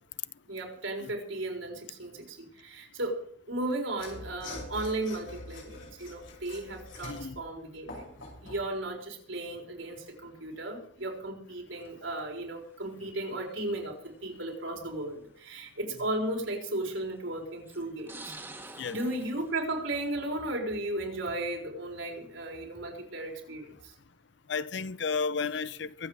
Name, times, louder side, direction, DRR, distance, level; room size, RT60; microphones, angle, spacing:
voice 1, 0.5-8.1 8.4-18.3 18.9-23.9, right 1 dB, 75° right, 4.2 m, -35 dB
Mechanisms / Sawing, 3.9-8.7, left 2 dB, 85° left, 6.2 m, -44 dB
voice 2, 7.1-7.4 18.8-19.0 24.5-26.1, left 5 dB, 60° left, 0.6 m, -32 dB
sound 1, 11.8-12.2 13.3-13.4 14.5-14.6 15.1-15.2 16.6-17.0 17.7-20.5 20.9-21.4, right 2 dB, 10° right, 1.5 m, -48 dB
23.5 x 8.1 x 4.8 m
head